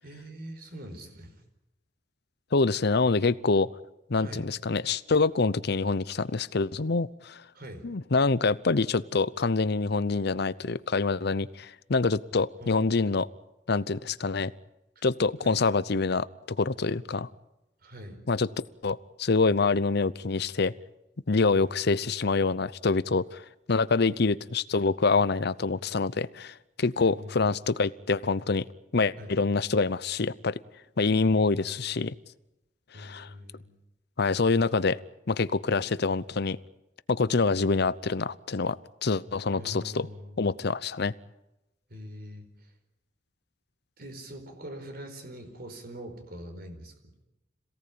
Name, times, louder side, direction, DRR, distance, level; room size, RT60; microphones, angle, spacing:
voice 1, 0.0-1.4 4.2-4.5 7.5-7.9 12.6-13.1 14.9-15.0 15.4-15.6 17.8-18.2 21.6-22.3 25.8-25.9 27.0-27.6 29.2-29.3 31.5-32.0 32.9-33.7 35.7-35.9 39.5-40.5 41.9-42.7 44.0-47.2, equal, 55° right, 6 dB, 4.8 m, -44 dB
voice 2, 2.5-3.7 4.1-7.4 7.8-13.3 13.7-14.5 15.0-16.3 16.6-17.3 18.3-18.5 18.8-20.7 21.3-23.4 23.7-28.6 28.9-30.6 31.0-32.1 32.9-33.3 34.2-35.0 35.3-36.6 37.1-40.1 40.4-41.1, left 4 dB, 60° left, 17 dB, 0.8 m, -26 dB
26.5 x 17.5 x 8.7 m, 0.93 s
head